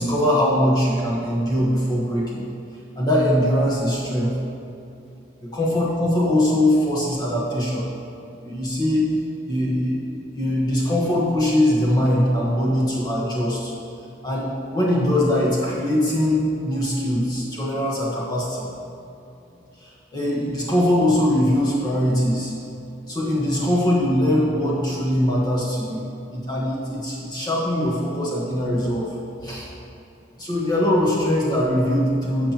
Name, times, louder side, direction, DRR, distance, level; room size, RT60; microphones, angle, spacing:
voice 1, 0.0-2.4 3.0-4.3 5.5-7.9 8.4-9.1 9.5-13.7 14.2-18.7 19.8-22.5 23.1-29.1 29.4-29.7 30.4-32.5, left 1 dB, 20° left, -6 dB, 1.2 m, -22 dB
12.5 x 7.4 x 3.0 m, 2.8 s
head